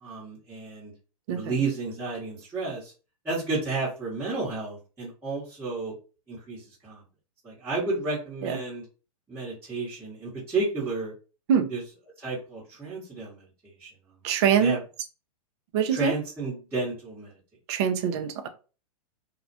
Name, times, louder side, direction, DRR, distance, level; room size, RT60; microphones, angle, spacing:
voice 1, 0.0-0.9 1.3-2.9 3.2-5.9 6.3-7.0 7.4-8.8 9.3-11.1 11.7-11.8 12.2-13.9 14.6-14.8 15.9-17.3 17.7-17.8, right 3 dB, 10° right, 0.9 m, -32 dB
voice 2, 14.2-14.8 15.7-16.1 17.7-18.5, right 7 dB, 45° right, 0.5 m, -24 dB
2.3 x 2.1 x 2.6 m
hypercardioid pair, 135°, 19 cm